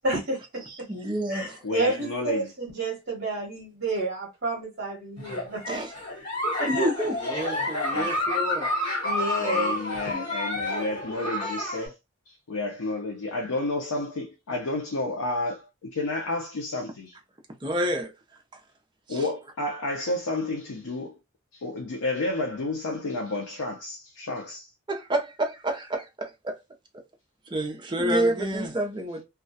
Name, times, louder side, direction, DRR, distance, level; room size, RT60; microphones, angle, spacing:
voice 1, 0.0-0.9 1.3-5.8 6.2-6.3 6.6-6.9 9.0-9.8 10.0-10.3, right 2 dB, 45° right, 0.8 m, -30 dB
voice 2, 0.9-1.5 5.7-5.9 6.7-8.7 17.6-18.1 19.1-19.2 24.9-26.6 27.5-29.2, right 1 dB, 20° right, 0.4 m, -28 dB
voice 3, 1.6-2.5 7.9-8.1 9.4-12.0 12.3-17.2 19.1-21.2 21.5-24.7, left 2 dB, 85° left, 0.5 m, -31 dB
Giggle, 5.2-11.9, left 1 dB, 20° left, 1.0 m, -29 dB
2.3 x 2.1 x 2.6 m
head